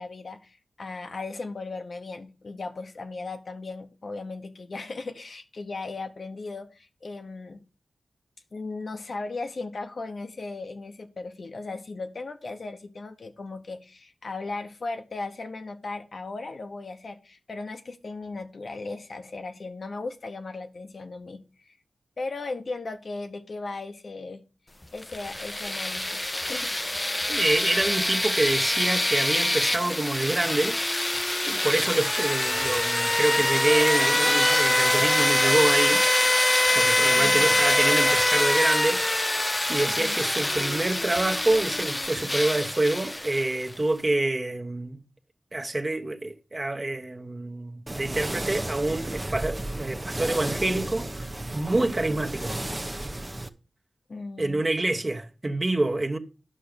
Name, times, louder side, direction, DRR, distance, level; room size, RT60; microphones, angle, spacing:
voice 1, 0.0-7.6 8.5-21.8 22.2-24.4 24.9-26.7 37.1-37.6 40.0-40.2 54.1-54.7, left 3 dB, 65° left, 1.0 m, -37 dB
sound 1, 25.0-43.7, left 1 dB, 20° left, 0.5 m, -24 dB
voice 2, 27.3-30.8 31.4-36.0 36.7-39.2 39.7-45.0 45.5-52.6 54.4-56.2, right 2 dB, 35° right, 1.2 m, -27 dB
sound 2, 33.5-38.7, right 4 dB, 70° right, 0.5 m, -37 dB
sound 3, 47.9-53.5, right 1 dB, 20° right, 0.8 m, -33 dB
9.9 x 5.9 x 5.2 m
cardioid pair, 55°, 0 cm